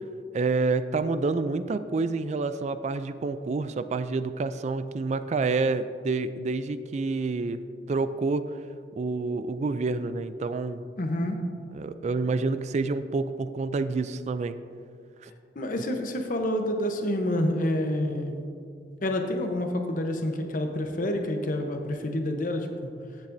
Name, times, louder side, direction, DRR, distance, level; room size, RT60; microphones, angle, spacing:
voice 1, 0.3-7.6 7.9-8.4 9.0-10.8 11.7-14.6, right 3 dB, 40° right, 12 dB, 0.3 m, -28 dB
voice 2, 11.0-11.4 15.6-18.5 19.0-22.9, left 1 dB, 50° left, 4 dB, 0.9 m, -28 dB
15.0 x 7.2 x 2.6 m, 2.3 s
head